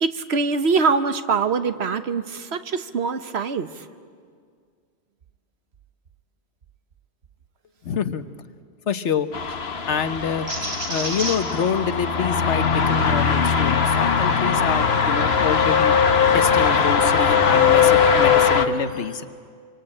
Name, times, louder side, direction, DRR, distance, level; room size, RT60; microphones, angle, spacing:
voice 1, 0.0-3.9, right 4 dB, 70° right, 10 dB, 1.3 m, -23 dB
voice 2, 7.8-8.2 8.9-9.6 9.9-10.5 10.9-15.9 16.3-19.3, left 6 dB, 80° left, 10 dB, 1.3 m, -26 dB
sound 1, 9.3-18.7, left 6 dB, 65° left, 1.4 m, -20 dB
sound 2, 10.5-16.0 16.5-17.7, right 1 dB, 85° right, 3.9 m, -35 dB
26.5 x 25.0 x 8.8 m, 2.1 s
omnidirectional pair, 1.2 m